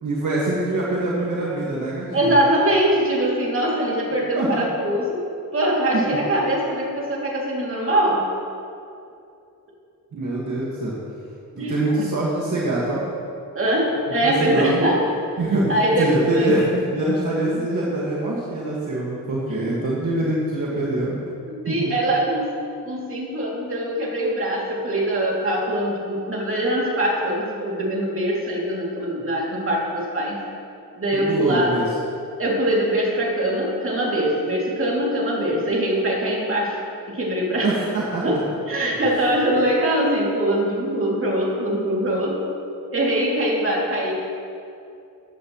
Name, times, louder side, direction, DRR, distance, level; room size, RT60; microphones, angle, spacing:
voice 1, 0.0-2.3 4.4-4.7 5.9-6.0 10.1-11.0 11.6-13.0 14.2-14.9 15.4-21.2 21.7-21.9 31.1-31.9 37.6-38.4, right 2 dB, 55° right, -6 dB, 1.9 m, -24 dB
voice 2, 2.1-5.2 5.5-8.3 11.5-11.7 13.5-15.0 15.4-16.7 19.5-19.8 21.5-22.6 22.8-30.4 31.0-31.7 32.4-36.8 37.1-37.7 38.2-38.4 38.7-42.4 42.9-44.1, right 1 dB, 35° right, -4 dB, 2.7 m, -22 dB
14.5 x 10.5 x 3.1 m, 2.5 s
cardioid pair, 105°, 35 cm